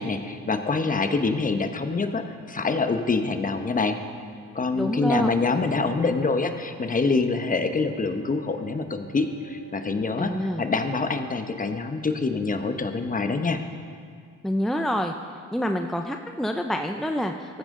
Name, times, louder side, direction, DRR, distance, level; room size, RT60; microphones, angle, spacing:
voice 1, 0.0-4.0 4.5-13.6, left 4 dB, 25° left, 7 dB, 1.0 m, -25 dB
voice 2, 4.7-5.3 10.2-10.7 14.4-15.1 15.5-17.6, equal, ahead, 5 dB, 0.5 m, -27 dB
Wind instrument woodwind instrument, 5.4-12.2, right 4 dB, 60° right, 1.1 m, -49 dB
14.0 x 14.0 x 3.8 m, 2.1 s
cardioid pair, 90°, 30 cm